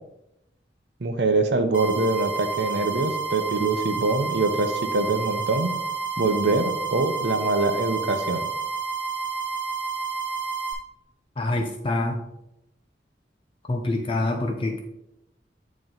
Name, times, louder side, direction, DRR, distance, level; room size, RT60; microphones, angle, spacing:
voice 1, 1.0-5.7 6.2-8.5, right 3 dB, 70° right, 6 dB, 0.7 m, -24 dB
sound 1, 1.7-10.7, right 5 dB, 10° right, 0.9 m, -30 dB
voice 2, 11.4-12.2 13.7-14.8, left 2 dB, 30° left, 3 dB, 0.4 m, -26 dB
8.7 x 3.0 x 3.9 m, 0.86 s
head